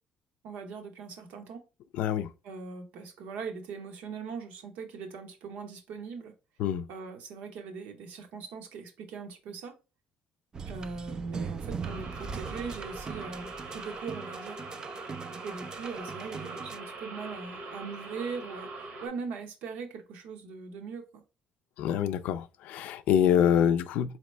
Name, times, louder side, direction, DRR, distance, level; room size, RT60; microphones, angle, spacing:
voice 1, 0.4-1.7 2.4-6.3 6.9-9.8 10.6-14.6 15.4-21.2, right 5 dB, 85° right, 0.9 m, -40 dB
voice 2, 2.0-2.3 6.6-6.9 21.8-24.2, left 9 dB, 80° left, 0.4 m, -25 dB
sound 1, 10.5-16.8, right 5 dB, 30° right, 0.3 m, -40 dB
sound 2, 11.8-19.1, right 3 dB, 65° right, 1.0 m, -42 dB
4.2 x 2.9 x 3.2 m
cardioid pair, 120°, 3 cm